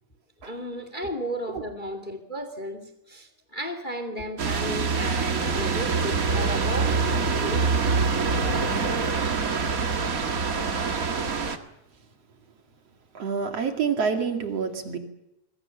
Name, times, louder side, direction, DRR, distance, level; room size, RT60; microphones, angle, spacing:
voice 1, 0.4-7.7 8.3-8.6, equal, 20° left, 2.1 m, -34 dB
sound 1, 4.4-11.6, right 4 dB, 35° right, 1.6 m, -25 dB
voice 2, 13.1-15.0, right 6 dB, 60° right, 3.2 m, -27 dB
25.5 x 24.0 x 7.1 m
omnidirectional pair, 3.3 m